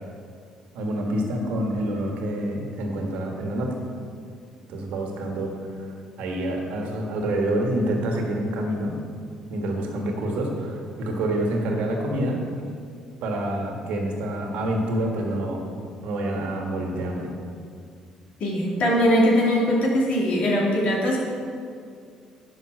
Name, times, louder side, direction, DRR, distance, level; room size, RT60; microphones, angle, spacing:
voice 1, 0.7-3.8 4.7-5.9 6.2-8.9 9.5-12.4 13.2-15.6 16.0-17.3, right 1 dB, 75° right, 1 dB, 1.7 m, -27 dB
voice 2, 18.4-21.2, equal, 60° left, -4 dB, 2.8 m, -21 dB
10.5 x 5.3 x 6.4 m, 2.2 s
hypercardioid pair, 60°, 2 cm